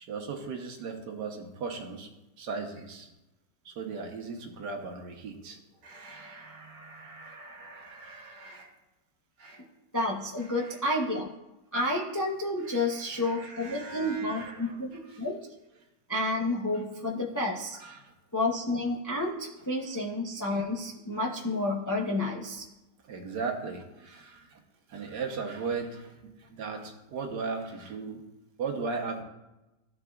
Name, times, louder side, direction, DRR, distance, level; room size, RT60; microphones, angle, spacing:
voice 1, 0.1-2.1 2.4-3.1 3.6-5.6 5.8-8.7 9.4-9.6 12.6-14.8 17.8-18.1 23.1-24.5 24.9-28.2 28.6-29.2, right 4 dB, 75° right, 3 dB, 1.6 m, -38 dB
voice 2, 9.9-11.3 11.7-14.9 15.2-15.3 16.1-17.8 18.3-22.7, left 1 dB, 20° left, -2 dB, 0.4 m, -30 dB
14.0 x 4.7 x 2.3 m, 0.99 s
omnidirectional pair, 1.8 m